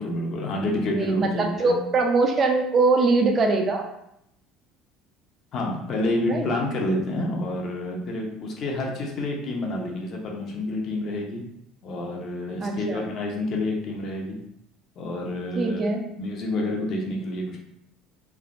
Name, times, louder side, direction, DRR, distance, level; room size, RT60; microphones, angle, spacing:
voice 1, 0.0-1.8 5.5-11.4 11.8-14.4 15.0-15.9 16.2-17.6, left 1 dB, 50° left, 0 dB, 0.6 m, -28 dB
voice 2, 1.0-3.8 6.3-6.5 12.6-13.0 15.6-16.0, right 3 dB, 35° right, 3 dB, 0.4 m, -22 dB
3.2 x 2.0 x 2.4 m, 0.77 s
cardioid pair, 135°, 0 cm